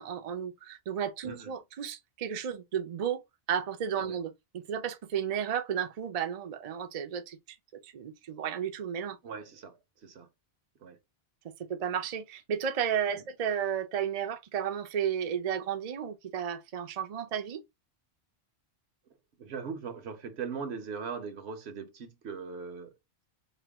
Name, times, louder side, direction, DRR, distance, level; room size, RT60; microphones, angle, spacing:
voice 1, 0.0-7.4 7.8-9.2 11.4-17.6, right 8 dB, 45° right, 0.5 m, -33 dB
voice 2, 9.2-9.7 10.0-10.3 10.8-11.0 13.1-13.2 19.4-22.9, right 5 dB, 75° right, 1.1 m, -39 dB
4.4 x 2.2 x 3.4 m
omnidirectional pair, 1.1 m